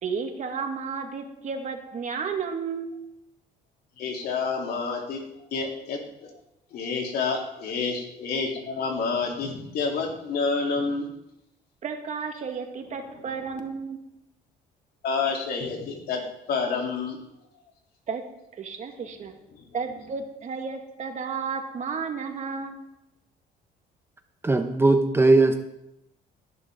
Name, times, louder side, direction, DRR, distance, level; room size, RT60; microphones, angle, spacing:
voice 1, 0.0-3.0 11.8-14.0 18.1-18.2 18.5-19.3 19.7-22.9, right 5 dB, 45° right, 4 dB, 2.1 m, -32 dB
voice 2, 4.0-5.2 5.5-6.3 6.7-11.1 15.0-16.2 16.5-17.2, left 4 dB, 70° left, 0 dB, 3.7 m, -28 dB
voice 3, 24.4-25.6, right 2 dB, 15° right, 7 dB, 0.9 m, -19 dB
18.5 x 11.0 x 4.0 m, 0.84 s
cardioid pair, 110°, 17 cm